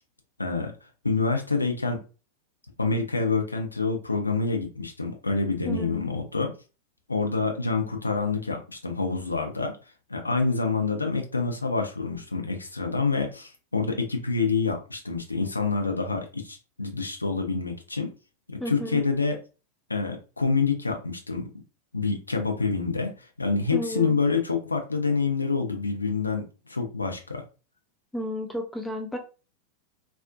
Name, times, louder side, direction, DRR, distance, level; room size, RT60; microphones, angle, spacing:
voice 1, 0.4-0.7 1.0-2.0 2.8-6.5 7.1-9.7 10.1-18.1 18.5-19.4 19.9-21.5 21.9-27.4, left 4 dB, 80° left, 3 dB, 0.5 m, -27 dB
voice 2, 5.6-6.1 18.6-19.0 23.7-24.2 28.1-29.2, equal, 5° left, 5 dB, 0.5 m, -32 dB
2.5 x 2.0 x 2.4 m, 0.34 s
figure-of-eight pair, 90°, 0 cm